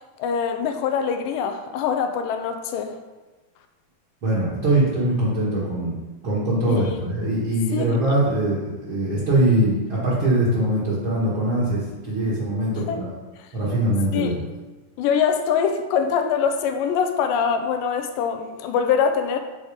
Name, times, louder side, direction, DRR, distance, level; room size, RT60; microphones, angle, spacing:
voice 1, 0.2-2.9 6.7-7.0 7.7-8.0 12.9-13.0 14.1-14.4 15.0-19.4, left 7 dB, 85° left, 7 dB, 2.2 m, -23 dB
voice 2, 4.2-6.0 6.2-13.0 13.5-14.4, right 1 dB, 50° right, -8 dB, 1.8 m, -22 dB
7.2 x 4.0 x 4.9 m, 1.2 s
omnidirectional pair, 3.9 m